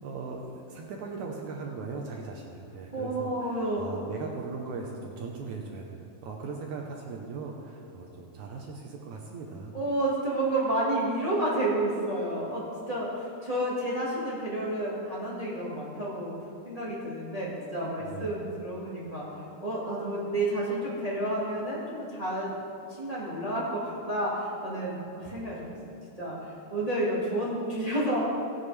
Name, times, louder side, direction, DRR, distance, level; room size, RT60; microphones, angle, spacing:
voice 1, 0.0-9.8 18.0-18.5, right 4 dB, 70° right, 0 dB, 2.0 m, -39 dB
voice 2, 2.9-3.8 9.7-16.3 16.6-22.5 22.9-28.2, right 1 dB, 30° right, -6 dB, 0.6 m, -30 dB
17.5 x 8.8 x 3.3 m, 2.6 s
omnidirectional pair, 3.9 m